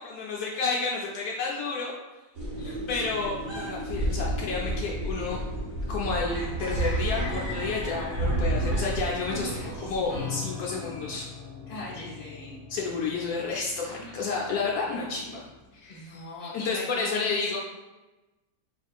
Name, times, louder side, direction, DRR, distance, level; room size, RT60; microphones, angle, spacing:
voice 1, 0.0-2.0 2.9-5.4 5.9-11.3 12.7-15.4 15.7-16.1 16.5-17.6, left 4 dB, 80° left, -3 dB, 1.1 m, -30 dB
sound 1, 2.4-10.2, right 1 dB, 60° right, 1.5 m, -31 dB
Piano, 7.1-15.6, left 2 dB, 30° right, 0.7 m, -40 dB
voice 2, 9.4-10.4 11.7-12.6 13.8-14.2 15.9-17.6, left 2 dB, 45° left, -4 dB, 1.3 m, -41 dB
4.6 x 3.5 x 2.3 m, 1.1 s
omnidirectional pair, 1.6 m